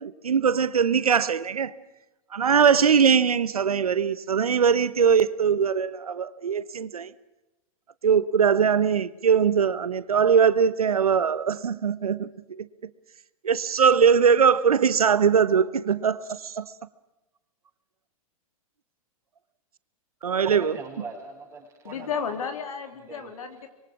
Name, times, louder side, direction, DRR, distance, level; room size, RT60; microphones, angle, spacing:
voice 1, 0.0-1.7 2.3-7.1 8.0-12.7 13.4-16.6 20.2-20.7, right 7 dB, 85° right, 1.1 m, -21 dB
voice 2, 20.4-22.3 23.0-23.3, right 4 dB, 20° right, 6.0 m, -39 dB
voice 3, 21.8-23.7, left 6 dB, 70° left, 3.6 m, -33 dB
26.0 x 23.0 x 6.2 m
hypercardioid pair, 110°, 18 cm